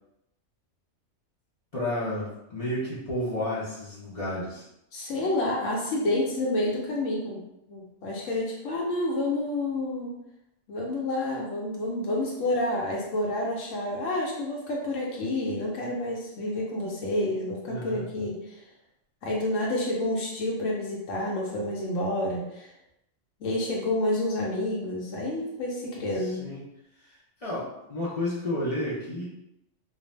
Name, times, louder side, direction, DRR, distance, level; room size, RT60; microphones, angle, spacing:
voice 1, 1.7-4.6 17.7-18.0 26.1-26.6 27.0-27.1 27.4-29.3, left 1 dB, 50° left, -8 dB, 0.4 m, -31 dB
voice 2, 4.9-7.4 7.7-10.1 10.7-18.6 19.2-22.7 23.4-26.4, left 1 dB, 80° left, -2 dB, 1.0 m, -29 dB
2.5 x 2.0 x 3.1 m, 0.84 s
omnidirectional pair, 1.3 m